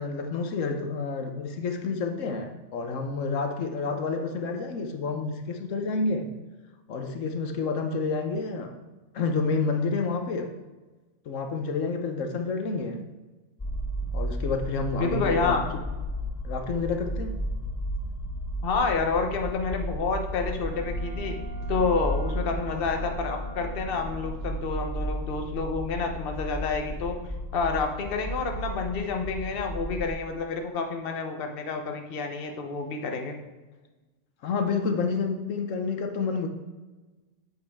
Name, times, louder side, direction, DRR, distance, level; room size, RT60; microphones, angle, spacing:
voice 1, 0.0-6.3 6.9-8.7 9.1-10.5 11.2-13.0 14.1-15.8 16.4-17.4 34.4-36.5, left 4 dB, 85° left, 5 dB, 1.2 m, -29 dB
sound 1, 13.6-30.1, equal, 25° left, 0.4 m, -33 dB
voice 2, 15.0-15.6 18.6-21.4 21.7-27.2 27.5-33.4, left 4 dB, 50° left, 4 dB, 1.1 m, -29 dB
Wind instrument woodwind instrument, 20.5-24.5, right 3 dB, 70° right, 2.4 m, -45 dB
8.2 x 8.0 x 3.5 m, 1.2 s
omnidirectional pair, 1.3 m